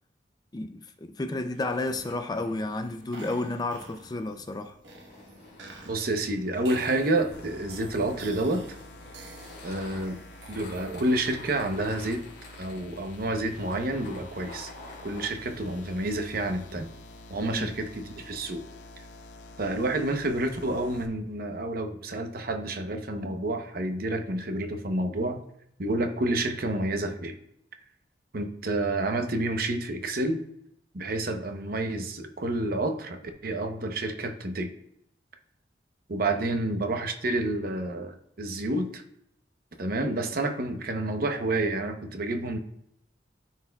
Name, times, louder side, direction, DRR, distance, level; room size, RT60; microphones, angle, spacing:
voice 1, 0.5-4.8 17.5-17.7, left 2 dB, 20° left, 0.4 m, -32 dB
sound 1, 1.5-11.4, right 2 dB, 90° right, 1.3 m, -49 dB
sound 2, 1.7-15.3, left 2 dB, 65° left, 2.5 m, -50 dB
voice 2, 5.9-8.6 9.6-10.2 10.5-12.2 12.6-14.7 15.0-16.9 17.3-18.6 19.6-25.4 25.8-27.4 28.3-30.4 30.9-34.7 36.1-39.0 39.8-42.6, right 2 dB, 55° right, 0.8 m, -29 dB
sound 3, 7.3-21.1, left 2 dB, 80° left, 0.9 m, -48 dB
13.5 x 4.5 x 2.3 m
head